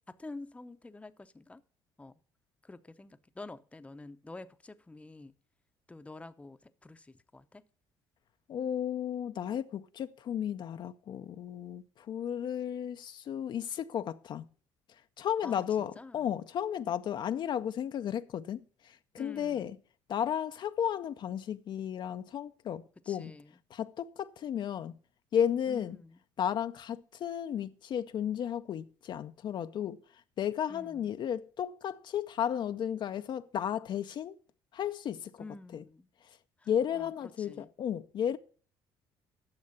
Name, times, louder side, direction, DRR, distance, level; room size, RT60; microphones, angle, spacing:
voice 1, 0.1-1.6 2.0-2.2 2.6-5.3 5.9-7.6 15.4-16.3 19.2-19.8 23.1-23.5 25.7-26.2 30.7-31.2 35.4-36.1 36.6-37.1 37.4-37.7, left 2 dB, 15° left, 0.7 m, -48 dB
voice 2, 8.5-14.4 15.2-19.8 20.1-23.3 23.7-24.9 25.3-26.0 26.4-30.0 30.4-34.4 34.7-35.4 35.7-35.8 36.7-38.4, left 9 dB, 50° left, 0.5 m, -34 dB
9.7 x 6.5 x 6.9 m
supercardioid pair, 80°, 10 cm